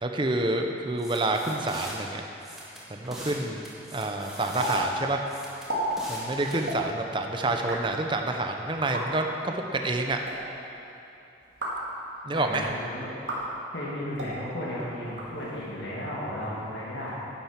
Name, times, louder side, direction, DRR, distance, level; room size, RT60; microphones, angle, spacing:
voice 1, 0.0-2.2 2.9-3.6 3.9-5.2 6.1-10.2 12.2-12.7, right 2 dB, 30° right, 3 dB, 0.7 m, -28 dB
sound 1, 1.0-1.9 2.4-3.4 3.6-4.8 5.3-6.7, equal, ahead, 1.9 m, -41 dB
sound 2, 4.6-4.7 5.0-5.1 5.5-5.8 6.6-6.8 7.5-7.8 8.8-9.0 10.0-10.3 11.4-11.8 12.4-12.7 13.2-13.4 14.1-14.3 15.0-15.7, equal, 85° right, 2.5 m, -35 dB
voice 2, 12.3-13.2 13.7-17.1, left 1 dB, 80° left, -7 dB, 2.0 m, -34 dB
10.5 x 8.7 x 5.8 m, 2.8 s
head